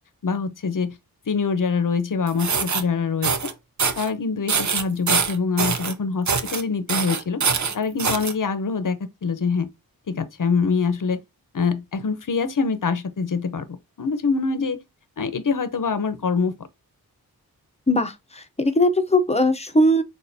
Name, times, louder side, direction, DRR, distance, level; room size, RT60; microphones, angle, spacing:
voice 1, 0.2-1.0 1.3-3.3 4.0-7.4 7.7-9.7 10.1-11.2 11.5-14.8 15.2-16.5, left 5 dB, 55° left, 0.8 m, -24 dB
sound 1, 2.3-2.8 3.2-3.5 3.8-4.1 4.5-5.9 6.3-6.6 6.9-8.3, right 5 dB, 50° right, 0.7 m, -23 dB
voice 2, 17.9-20.0, left 1 dB, 15° left, 0.8 m, -20 dB
6.4 x 2.4 x 2.7 m
wide cardioid pair, 85°, 37 cm